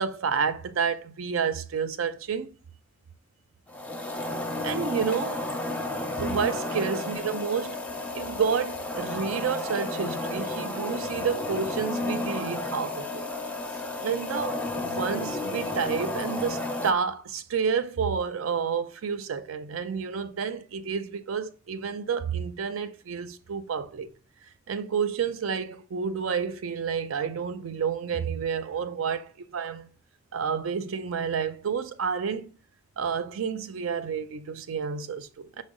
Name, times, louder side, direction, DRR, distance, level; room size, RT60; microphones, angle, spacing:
voice 1, 0.0-2.5 4.6-5.4 6.1-7.8 8.1-13.3 14.0-24.1 24.7-29.9 30.3-32.5 33.0-35.6, right 6 dB, 90° right, 0.5 m, -30 dB
sound 1, 3.7-16.9, left 2 dB, 5° left, 0.4 m, -32 dB
6.0 x 2.2 x 3.7 m
head